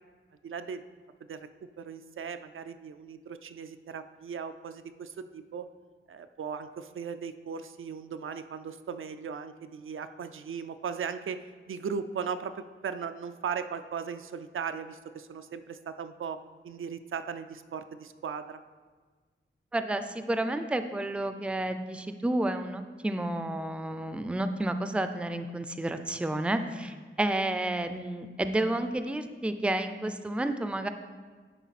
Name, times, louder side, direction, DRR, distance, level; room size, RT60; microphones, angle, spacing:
voice 1, 0.4-0.8 1.3-1.5 1.8-5.7 6.1-16.4 16.6-18.6, right 6 dB, 75° right, 10 dB, 0.4 m, -37 dB
voice 2, 19.7-30.9, right 1 dB, 5° right, 9 dB, 0.4 m, -31 dB
10.0 x 4.8 x 4.1 m, 1.5 s
wide cardioid pair, 115°, 21 cm